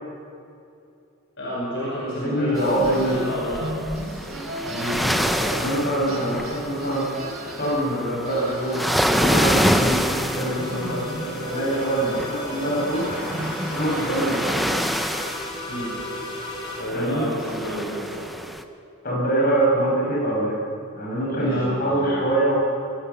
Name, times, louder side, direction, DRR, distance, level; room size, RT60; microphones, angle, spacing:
voice 1, 1.4-4.4 5.9-6.2 15.7-15.9 16.8-18.3 21.3-22.3, equal, 55° left, -6 dB, 5.3 m, -31 dB
voice 2, 2.1-3.1 4.7-7.1 7.6-13.2 13.7-14.7 16.9-17.2 19.0-20.6 20.9-22.5, right 1 dB, 40° left, -4 dB, 6.8 m, -24 dB
sound 1, 2.5-5.8 6.1-9.1 9.6-14.9, right 1 dB, 70° right, 6.0 m, -36 dB
sound 2, 2.6-18.6, equal, ahead, 0.7 m, -27 dB
sound 3, 7.9-16.8, left 1 dB, 20° left, 3.3 m, -36 dB
22.5 x 16.5 x 7.0 m, 2.6 s
head